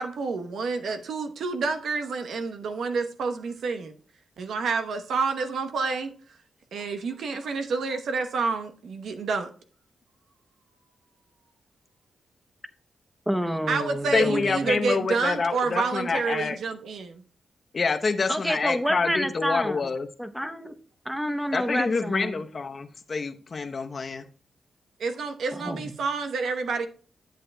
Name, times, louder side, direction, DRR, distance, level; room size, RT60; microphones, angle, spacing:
voice 1, 0.0-3.9 4.4-6.1 6.7-9.5 13.7-17.2 25.0-26.9, right 4 dB, 80° right, 7 dB, 0.9 m, -28 dB
voice 2, 13.3-14.7 18.3-19.9 20.2-20.7 21.1-22.4 25.6-25.9, equal, 5° right, 8 dB, 0.8 m, -29 dB
voice 3, 14.1-16.6 17.7-20.1 21.5-24.3, left 4 dB, 45° left, 7 dB, 0.8 m, -27 dB
11.0 x 7.6 x 2.2 m, 0.40 s
cardioid pair, 80°, 0 cm